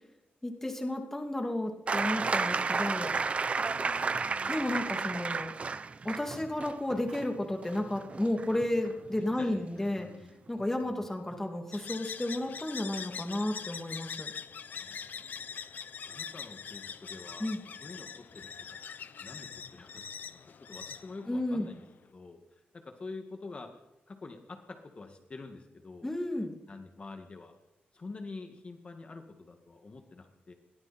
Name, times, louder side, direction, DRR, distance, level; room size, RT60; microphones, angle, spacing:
voice 1, 0.4-3.1 4.5-5.5 6.0-10.1 10.5-14.3 17.4-17.6 21.3-21.7 26.0-26.5, left 1 dB, 10° left, 3 dB, 2.6 m, -32 dB
sound 1, 1.9-9.4 10.6-10.7, right 4 dB, 35° right, 0.8 m, -32 dB
voice 2, 3.6-4.6 6.2-6.5 9.2-10.3 10.8-11.1 14.8-15.2 16.1-17.5 17.8-18.5 19.2-21.8 22.1-22.4 22.7-23.7 24.1-26.1 26.7-27.5 27.9-30.5, left 3 dB, 35° left, 4 dB, 2.1 m, -47 dB
sound 2, 11.7-21.9, left 7 dB, 60° left, 1.0 m, -43 dB
29.0 x 22.0 x 4.4 m, 0.90 s
wide cardioid pair, 140°, 3 cm